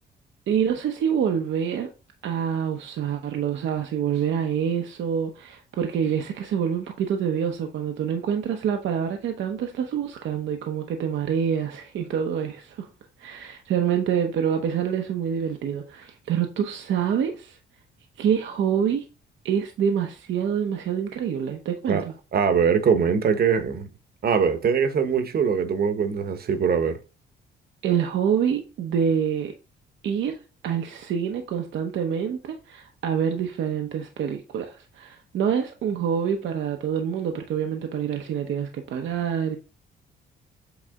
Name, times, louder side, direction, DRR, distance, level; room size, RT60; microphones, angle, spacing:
voice 1, 0.5-1.9 2.2-12.9 13.2-17.6 18.2-19.1 19.4-22.1 27.8-29.5 30.0-39.6, right 8 dB, 70° right, 0.8 m, -26 dB
voice 2, 22.3-23.9 24.2-27.0, right 6 dB, 50° right, 1.1 m, -22 dB
8.1 x 3.2 x 3.7 m
cardioid pair, 90°, 20 cm